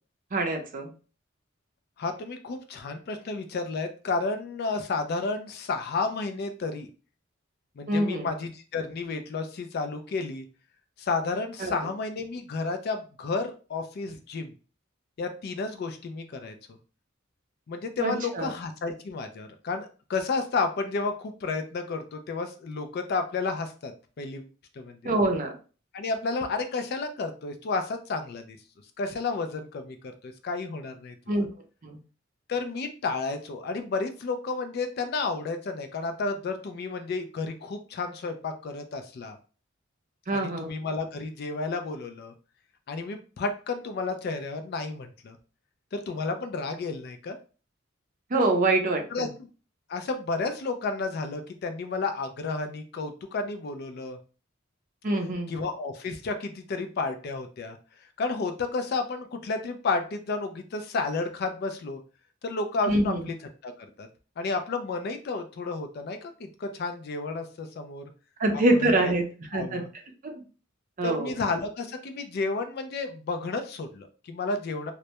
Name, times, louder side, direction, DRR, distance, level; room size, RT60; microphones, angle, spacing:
voice 1, 0.3-0.9 7.9-8.3 11.6-11.7 18.0-18.5 25.0-25.5 31.3-31.5 31.8-32.0 40.3-40.7 48.3-49.3 55.0-55.5 62.9-63.2 68.4-69.2 69.5-69.8 70.2-70.4 71.0-71.3, right 2 dB, 40° right, 3 dB, 0.5 m, -25 dB
voice 2, 2.0-6.9 7.8-10.5 11.0-14.5 15.2-16.5 17.7-23.9 24.2-24.5 24.8-25.2 25.9-28.6 29.0-30.0 30.2-31.1 32.5-39.4 40.3-42.3 42.9-45.4 45.9-47.4 49.1-49.5 49.9-54.2 55.5-57.8 58.2-62.0 62.4-63.4 63.6-63.7 64.0-64.1 64.4-68.0 68.8-69.1 69.5-69.9 71.0-74.9, left 3 dB, 50° left, 7 dB, 0.3 m, -31 dB
2.1 x 2.1 x 2.8 m, 0.36 s
head